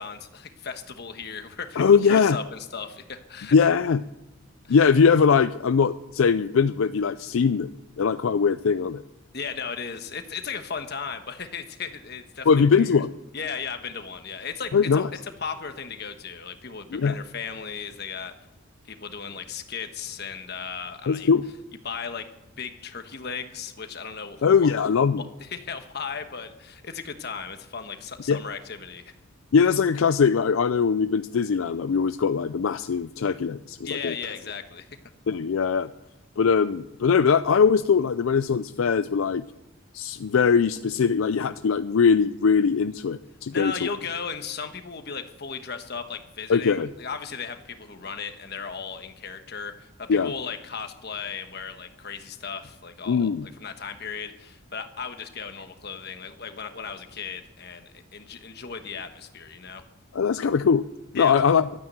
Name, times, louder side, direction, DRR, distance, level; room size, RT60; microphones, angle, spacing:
voice 1, 0.0-3.5 4.6-4.8 9.3-13.0 13.3-18.3 18.8-21.3 21.8-22.3 22.6-24.4 25.4-29.0 33.8-34.9 43.5-59.8 61.1-61.4, left 6 dB, 50° left, 7 dB, 1.3 m, -36 dB
voice 2, 1.8-2.4 3.5-4.0 4.7-7.7 8.0-9.0 12.5-13.1 14.7-15.1 16.9-17.2 21.1-21.5 24.4-25.2 28.3-28.4 29.5-34.1 35.3-35.9 36.4-39.4 39.9-43.9 46.5-46.9 50.1-50.3 53.1-53.5 60.1-60.8 61.1-61.7, left 6 dB, 75° left, 12 dB, 0.4 m, -21 dB
12.5 x 9.5 x 9.0 m, 0.96 s
head